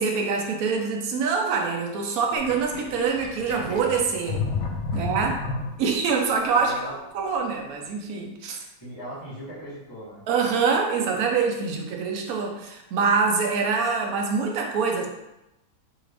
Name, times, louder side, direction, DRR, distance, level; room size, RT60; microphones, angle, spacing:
voice 1, 0.0-4.4 4.9-5.3 5.8-8.6 10.3-15.1, right 5 dB, 70° right, 1 dB, 0.9 m, -25 dB
Sink (filling or washing), 2.4-6.1, left 4 dB, 85° left, 1.4 m, -31 dB
voice 2, 4.9-5.2 6.5-7.0 8.8-10.2, right 1 dB, 15° left, -10 dB, 0.7 m, -38 dB
4.7 x 2.5 x 3.3 m, 0.92 s
omnidirectional pair, 2.2 m